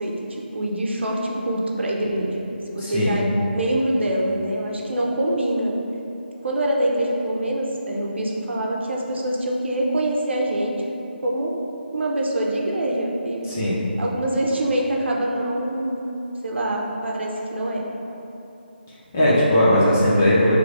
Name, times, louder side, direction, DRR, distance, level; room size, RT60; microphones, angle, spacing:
voice 1, 0.0-5.7 6.4-10.7 11.2-11.5 11.9-13.7 14.0-16.1 16.4-17.8, right 1 dB, 80° right, -2 dB, 0.7 m, -25 dB
voice 2, 2.8-3.1 13.5-13.7 19.1-20.6, left 1 dB, 15° left, -8 dB, 0.4 m, -18 dB
4.7 x 3.1 x 2.5 m, 2.9 s
hypercardioid pair, 175°, 6 cm